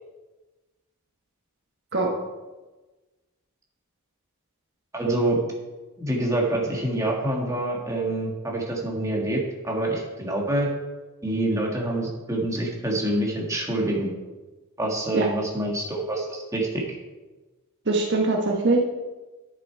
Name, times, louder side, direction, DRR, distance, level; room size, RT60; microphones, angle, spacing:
voice 1, 4.9-5.4 6.0-10.7 11.2-14.1 14.8-17.0, right 1 dB, 15° right, -2 dB, 1.8 m, -26 dB
voice 2, 17.9-18.8, right 2 dB, 55° right, 0 dB, 1.2 m, -22 dB
11.0 x 6.8 x 4.6 m, 1.2 s
head